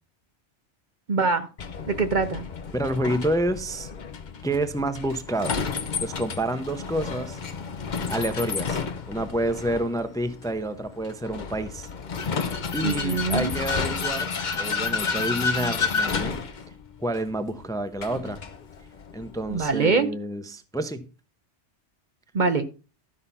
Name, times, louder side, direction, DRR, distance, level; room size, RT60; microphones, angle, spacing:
voice 1, 1.1-1.5 1.9-2.4 12.8-13.5 19.5-20.1 22.3-22.7, right 4 dB, 45° right, 0.8 m, -23 dB
Vehicle, 1.6-19.7, left 5 dB, 45° left, 0.9 m, -31 dB
voice 2, 2.7-3.9 4.4-5.6 6.0-7.4 8.1-8.8 9.1-11.9 12.7-14.3 14.6-16.4 17.0-18.4 19.1-21.0, right 1 dB, 5° left, 0.7 m, -28 dB
12.5 x 5.7 x 5.5 m
omnidirectional pair, 1.2 m